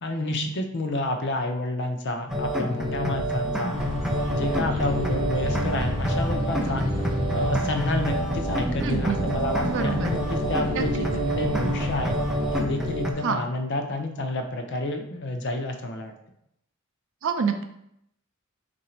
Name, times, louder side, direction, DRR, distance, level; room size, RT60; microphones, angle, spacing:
voice 1, 0.0-3.8 4.3-6.8 7.3-12.2 12.5-16.1, left 2 dB, 55° left, 4 dB, 0.6 m, -29 dB
sound 1, 2.3-13.1, equal, ahead, 0.5 m, -28 dB
sound 2, 3.7-12.6, equal, 25° right, 1.4 m, -31 dB
voice 2, 8.8-9.3 9.6-10.2 10.7-10.8 13.2-13.4 17.2-17.6, right 5 dB, 65° right, 7 dB, 0.5 m, -27 dB
3.9 x 2.6 x 4.3 m, 0.77 s
head